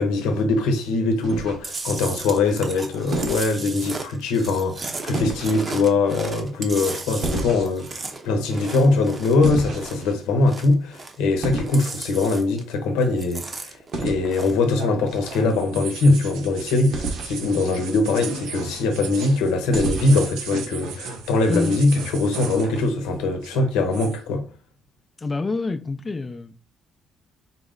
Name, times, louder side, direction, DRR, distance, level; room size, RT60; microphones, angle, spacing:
voice 1, 0.0-13.8 14.0-24.5, left 3 dB, 85° left, 0.7 m, -22 dB
sound 1, 1.2-1.9 3.1-3.5 5.1-5.6 7.2-7.9 9.4-10.1 11.4-11.8 13.9-14.2 16.9-17.4 19.7-20.3, right 2 dB, 70° right, 1.1 m, -29 dB
Chewing mastication, 1.6-10.1 10.4-11.3 11.6-12.7 13.0-14.7 15.0-15.5, right 3 dB, 35° right, 0.7 m, -35 dB
sound 2, 14.0-23.1 23.3-24.2, right 5 dB, 85° right, 0.6 m, -36 dB
voice 2, 25.2-26.6, left 3 dB, 30° left, 0.4 m, -27 dB
4.1 x 2.0 x 3.7 m
supercardioid pair, 70°, 0 cm